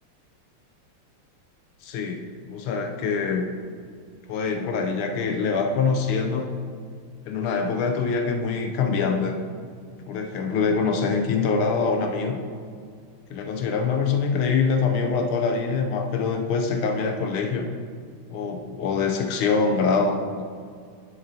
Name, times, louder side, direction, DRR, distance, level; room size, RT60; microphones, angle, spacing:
voice 1, 1.8-3.5 4.3-6.5 7.2-9.4 10.0-12.4 13.3-17.7 18.3-20.4, left 5 dB, 80° left, 4 dB, 1.4 m, -24 dB
10.5 x 6.6 x 2.7 m, 2.2 s
omnidirectional pair, 2.4 m